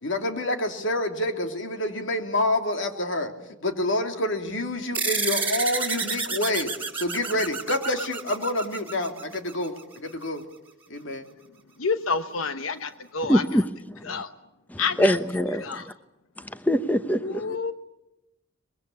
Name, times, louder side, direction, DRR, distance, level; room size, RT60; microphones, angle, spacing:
voice 1, 0.0-3.3 3.6-9.7 10.0-10.4 10.9-11.2, left 1 dB, 65° left, 3.0 m, -27 dB
sound 1, 4.9-9.8, right 4 dB, 10° right, 3.7 m, -30 dB
voice 2, 11.8-13.6 14.0-14.3 14.8-15.2 15.6-15.9 17.2-17.7, left 4 dB, 90° left, 1.0 m, -29 dB
voice 3, 13.3-13.6 13.9-14.0 14.7-15.8 16.5-17.2, equal, 10° left, 0.9 m, -23 dB
24.5 x 22.5 x 8.5 m
head